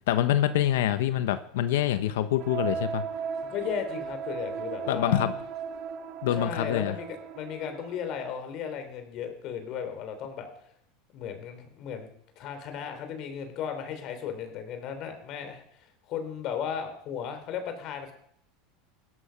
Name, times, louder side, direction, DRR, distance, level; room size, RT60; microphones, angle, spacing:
voice 1, 0.1-3.0 4.9-5.3 6.2-7.0, left 12 dB, 80° left, 11 dB, 1.1 m, -25 dB
sound 1, 2.4-8.2, right 6 dB, 50° right, 1.6 m, -36 dB
voice 2, 3.5-5.2 6.3-10.5 11.1-12.1 12.4-18.1, left 8 dB, 50° left, 7 dB, 3.6 m, -35 dB
16.5 x 12.5 x 5.9 m, 0.69 s
supercardioid pair, 115°, 0 cm